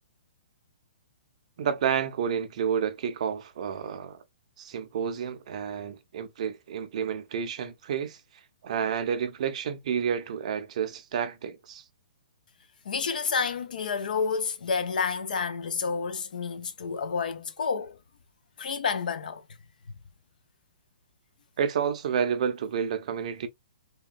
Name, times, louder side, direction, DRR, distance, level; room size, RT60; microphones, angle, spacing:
voice 1, 1.6-4.2 4.6-8.2 8.6-11.8 21.6-23.5, right 7 dB, 50° right, 0.5 m, -30 dB
voice 2, 12.8-18.0 18.6-19.4, left 5 dB, 75° left, 0.6 m, -29 dB
2.9 x 2.2 x 2.4 m
hypercardioid pair, 160°, 5 cm